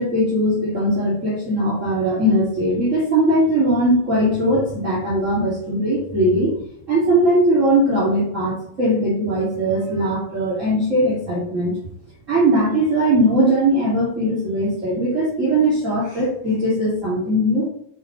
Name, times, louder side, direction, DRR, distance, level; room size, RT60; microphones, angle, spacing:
voice 1, 0.0-6.5 6.9-11.7 12.3-17.7, right 1 dB, 25° right, -6 dB, 2.2 m, -19 dB
9.0 x 7.2 x 3.1 m, 0.71 s
omnidirectional pair, 4.2 m